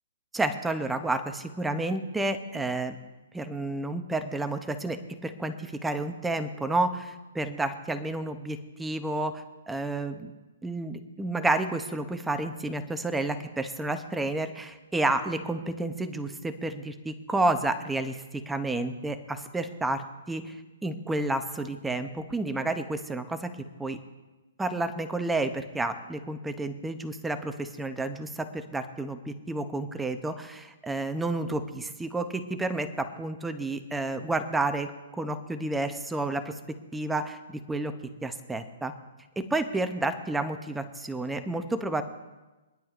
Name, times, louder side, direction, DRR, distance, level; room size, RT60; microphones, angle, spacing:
voice 1, 0.3-3.0 3.3-10.3 10.6-20.5 20.8-23.5 23.8-24.0 24.6-36.6 36.9-37.9 38.2-38.9 39.4-42.0, right 2 dB, 5° right, 8 dB, 0.5 m, -30 dB
25.0 x 10.5 x 2.4 m, 1.2 s
hypercardioid pair, 180°, 0 cm